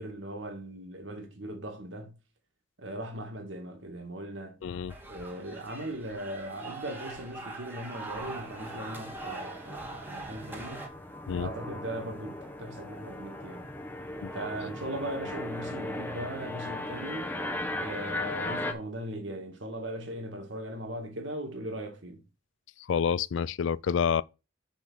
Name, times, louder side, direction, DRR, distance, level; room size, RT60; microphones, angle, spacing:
voice 1, 0.0-2.1 2.8-4.6 5.0-10.9 11.4-13.7 14.3-17.4 17.8-22.2, right 1 dB, 70° right, 2.1 m, -39 dB
voice 2, 4.6-4.9 11.3-11.5 14.2-14.3 22.9-24.2, left 7 dB, 75° left, 0.4 m, -28 dB
sound 1, 4.9-10.9, right 3 dB, 10° right, 1.9 m, -42 dB
sound 2, 7.8-18.7, left 1 dB, 10° left, 1.0 m, -38 dB
6.0 x 5.7 x 6.3 m
head